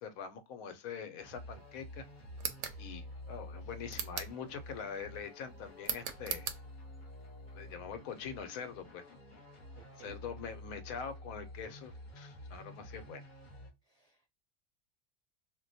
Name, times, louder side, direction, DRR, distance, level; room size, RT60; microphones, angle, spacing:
voice 1, 0.0-2.0 2.8-6.5 7.5-9.0 10.0-13.2, left 6 dB, 80° left, 1.1 m, -44 dB
sound 1, 1.2-13.7, left 1 dB, 40° left, 0.9 m, -50 dB
sound 2, 2.3-2.8 3.9-4.4 5.8-6.6, right 8 dB, 65° right, 0.8 m, -38 dB
voice 2, 9.7-10.2 13.8-14.3, right 3 dB, 40° right, 0.5 m, -57 dB
2.5 x 2.1 x 3.9 m
omnidirectional pair, 1.5 m